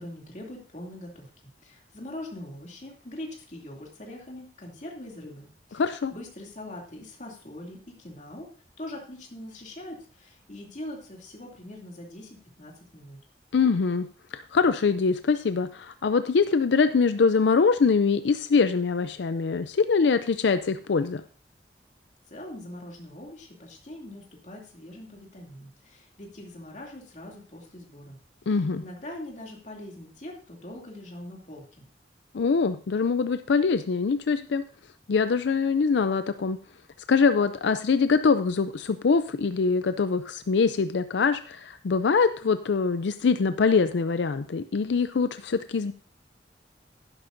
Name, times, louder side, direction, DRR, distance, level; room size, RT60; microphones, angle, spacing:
voice 1, 0.0-8.5 8.8-13.2 22.3-28.2 28.4-31.8, left 1 dB, 45° left, -1 dB, 2.7 m, -42 dB
voice 2, 5.7-6.1 13.5-14.1 14.3-21.2 28.5-28.8 32.3-34.6 35.1-36.6 37.1-45.9, left 5 dB, 85° left, 11 dB, 0.5 m, -23 dB
11.5 x 11.0 x 2.6 m, 0.40 s
head